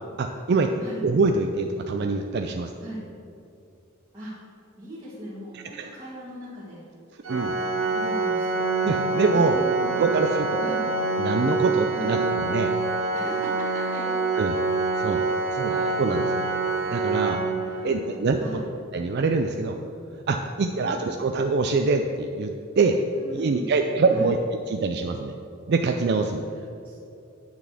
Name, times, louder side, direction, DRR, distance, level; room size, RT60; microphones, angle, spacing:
voice 1, 0.2-0.7 1.0-2.7 5.7-5.9 7.3-7.5 8.8-9.6 10.0-10.6 11.2-12.7 14.4-14.6 15.0-15.3 15.5-16.4 16.8-17.4 17.8-18.6 18.9-19.8 20.3-23.0 23.3-24.4 24.7-25.3 25.7-26.4, right 4 dB, 55° right, 5 dB, 0.4 m, -24 dB
voice 2, 4.8-6.8 7.9-8.7 9.3-10.1 10.6-10.9 11.9-12.1 13.1-14.2 15.6-16.0 17.6-18.7 20.7-21.1 23.1-23.7 24.1-24.4 26.8-27.0, right 1 dB, 20° right, -11 dB, 1.9 m, -38 dB
Organ, 7.2-18.1, right 3 dB, 75° right, 1.5 m, -26 dB
9.6 x 4.1 x 7.3 m, 2.6 s
head